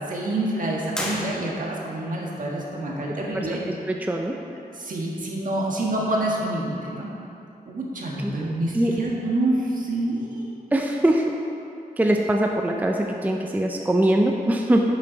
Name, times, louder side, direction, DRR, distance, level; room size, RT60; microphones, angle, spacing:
voice 1, 0.1-3.6 4.7-7.1 7.6-10.5, right 1 dB, 60° right, -3 dB, 1.6 m, -27 dB
sound 1, 0.9-2.0, equal, 5° left, 1.3 m, -32 dB
voice 2, 3.9-4.3 8.2-8.3 8.7-8.9 10.7-11.3 12.0-14.8, right 1 dB, 10° right, 1 dB, 0.5 m, -22 dB
10.5 x 7.1 x 4.0 m, 2.7 s
wide cardioid pair, 145°, 15 cm